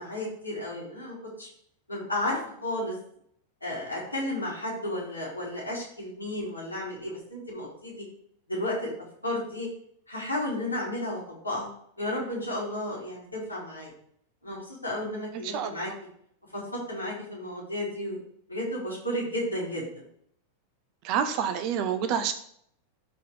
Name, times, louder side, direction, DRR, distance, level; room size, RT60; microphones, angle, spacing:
voice 1, 0.0-1.5 1.9-2.9 3.6-8.0 8.5-8.9 9.2-9.7 10.1-11.7 12.0-13.9 14.4-15.9 16.5-18.2 18.5-19.9, left 1 dB, 85° left, -5 dB, 3.9 m, -33 dB
voice 2, 15.3-15.7 21.0-22.3, right 8 dB, 45° right, 9 dB, 1.0 m, -28 dB
12.5 x 4.3 x 4.9 m, 0.66 s
figure-of-eight pair, 90°, 0 cm